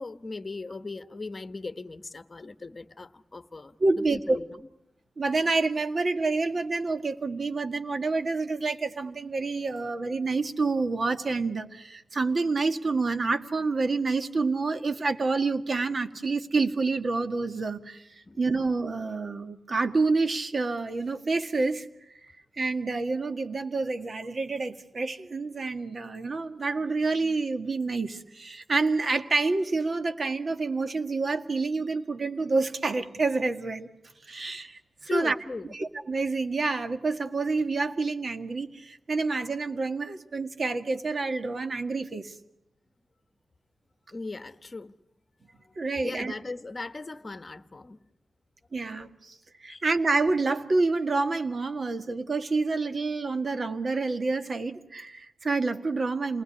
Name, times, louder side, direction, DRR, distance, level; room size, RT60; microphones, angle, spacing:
voice 1, 0.0-4.7 18.3-18.4 35.0-35.7 44.1-44.9 45.6-45.8 46.0-48.0 49.7-49.8, left 3 dB, 30° left, 1.2 m, -38 dB
voice 2, 3.8-4.4 5.2-33.9 34.2-35.3 35.7-42.3 45.7-46.3 48.7-56.4, right 3 dB, 45° right, 1.8 m, -28 dB
29.5 x 20.0 x 9.9 m
wide cardioid pair, 120°, 0 cm